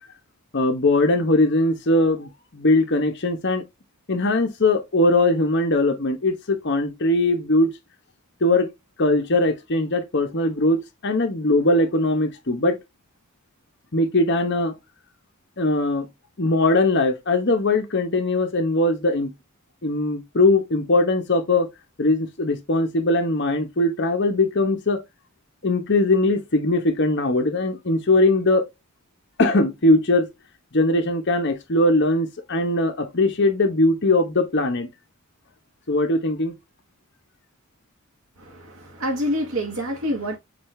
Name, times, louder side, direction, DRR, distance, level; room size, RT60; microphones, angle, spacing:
voice 1, 0.5-3.6 4.1-7.7 8.4-8.7 9.0-12.8 13.9-14.7 15.6-16.1 16.4-19.3 19.8-21.7 22.0-25.0 25.6-28.6 29.4-30.3 30.7-34.9 35.9-36.5, left 2 dB, 50° left, 0.9 m, -20 dB
voice 2, 38.4-40.4, equal, 65° right, 1.0 m, -27 dB
6.2 x 2.4 x 3.2 m
head